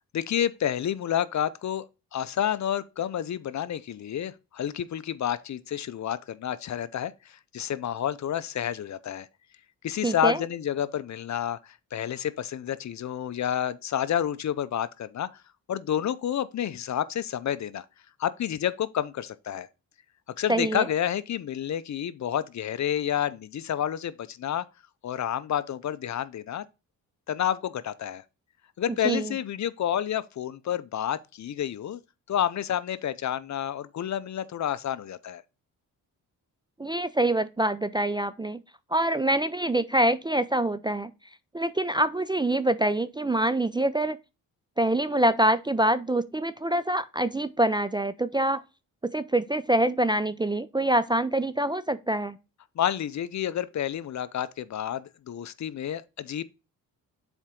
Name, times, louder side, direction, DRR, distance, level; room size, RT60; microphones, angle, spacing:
voice 1, 0.1-1.9 2.1-9.3 9.8-15.4 15.7-17.8 18.2-19.7 20.4-24.6 25.0-26.6 27.3-28.2 28.8-32.0 32.3-35.4 52.8-56.4, left 10 dB, 50° left, 0.6 m, -29 dB
voice 2, 10.0-10.4 20.5-20.8 29.0-29.3 36.8-38.6 38.9-41.1 41.5-44.2 44.8-48.6 49.0-52.4, right 1 dB, 15° right, 0.4 m, -25 dB
7.2 x 4.4 x 3.7 m
cardioid pair, 75°, 36 cm